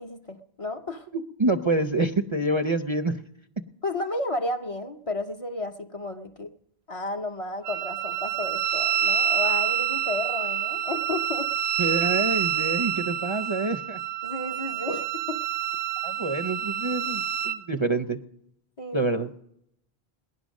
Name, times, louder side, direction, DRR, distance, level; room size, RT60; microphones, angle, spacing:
voice 1, 0.0-1.1 3.8-6.5 6.9-11.5 14.2-15.4 18.8-19.0, left 2 dB, 40° left, 4 dB, 0.6 m, -32 dB
voice 2, 1.1-3.2 11.8-14.0 16.0-18.2 18.9-19.3, right 2 dB, 35° right, 7 dB, 0.5 m, -27 dB
Wind instrument woodwind instrument, 7.6-17.6, right 10 dB, 85° right, 1.0 m, -27 dB
18.5 x 11.0 x 6.3 m, 0.77 s
omnidirectional pair, 1.1 m